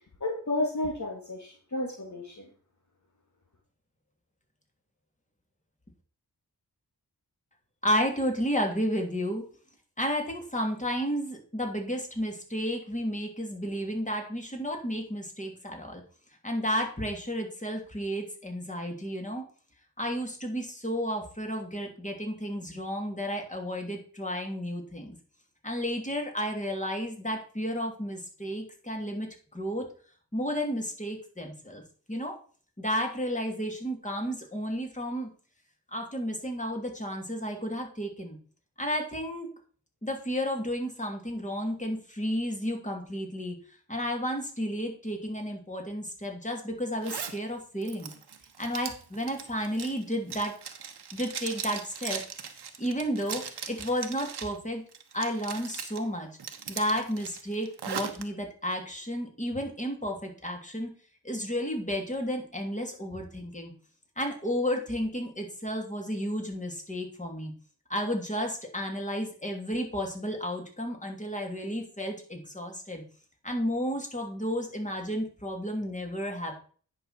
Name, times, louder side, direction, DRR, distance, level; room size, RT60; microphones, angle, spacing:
voice 1, 0.2-2.5, left 2 dB, 45° left, 0 dB, 2.2 m, -32 dB
voice 2, 7.8-9.4 10.0-16.0 16.4-19.4 20.0-25.1 25.6-29.3 29.5-29.8 30.3-31.8 32.1-32.3 32.8-35.3 35.9-38.4 38.8-39.5 40.0-43.5 43.9-48.1 48.6-50.5 51.1-52.2 52.8-53.4 53.7-54.8 55.1-56.3 56.7-60.9 61.2-63.7 64.2-67.5 67.9-73.0 73.4-76.5, equal, 20° left, 2 dB, 3.1 m, -32 dB
Zipper (clothing), 47.0-47.4 47.8-54.6 54.9-56.0 56.4-58.2, right 7 dB, 80° right, 1.2 m, -39 dB
9.8 x 6.1 x 4.4 m, 0.41 s
cardioid pair, 45°, 39 cm